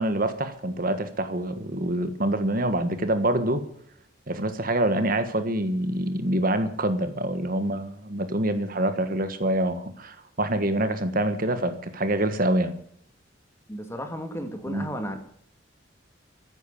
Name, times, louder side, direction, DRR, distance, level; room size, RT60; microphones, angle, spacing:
voice 1, 0.0-3.6 4.3-12.7 14.7-14.9, right 1 dB, 45° right, 10 dB, 1.5 m, -26 dB
voice 2, 13.7-15.2, equal, 15° left, 6 dB, 2.5 m, -33 dB
14.5 x 10.5 x 8.6 m, 0.64 s
head